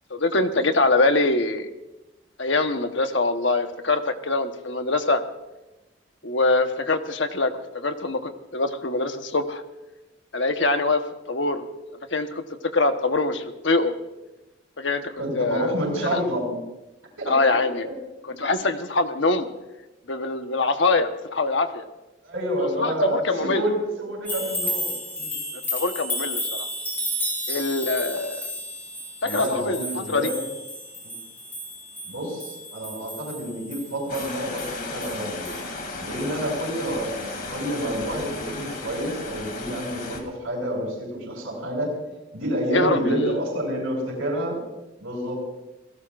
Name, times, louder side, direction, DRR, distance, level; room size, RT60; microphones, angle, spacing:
voice 1, 0.1-1.7 2.4-5.2 6.2-9.6 10.3-11.0 11.3-11.7 12.1-12.3 12.7-13.9 14.8-15.7 16.0-16.2 17.3-17.9 18.4-19.5 20.1-21.9 22.6-23.6 25.7-26.7 27.5-28.5 29.2-30.3 42.7-43.4, left 3 dB, 65° left, 6 dB, 1.2 m, -24 dB
voice 2, 15.2-16.6 17.2-17.5 18.3-18.4 22.2-25.3 29.2-30.4 32.0-35.5 36.0-41.9 42.3-44.6 45.0-45.4, equal, 85° right, -4 dB, 7.1 m, -28 dB
sound 1, 24.3-35.2 35.5-35.6, left 1 dB, 10° left, 4.5 m, -32 dB
sound 2, 34.1-40.2, left 3 dB, 45° left, 2.6 m, -35 dB
30.0 x 17.5 x 2.5 m, 1.0 s
head